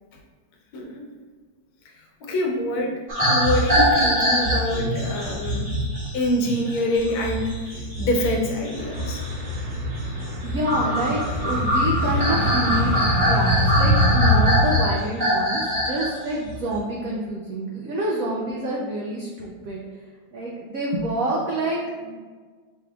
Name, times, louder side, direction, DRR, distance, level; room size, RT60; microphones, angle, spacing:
voice 1, 0.7-1.1 2.2-5.7 6.1-9.2, left 1 dB, 80° left, 0 dB, 1.5 m, -26 dB
sound 1, 3.1-16.1 16.5-16.8, equal, 35° right, 1.2 m, -24 dB
sound 2, 8.8-14.8, equal, 55° right, 1.2 m, -23 dB
voice 2, 10.4-13.0 13.2-19.8 20.3-22.2, right 1 dB, 85° right, -3 dB, 0.7 m, -27 dB
5.8 x 3.6 x 2.3 m, 1.5 s
omnidirectional pair, 2.2 m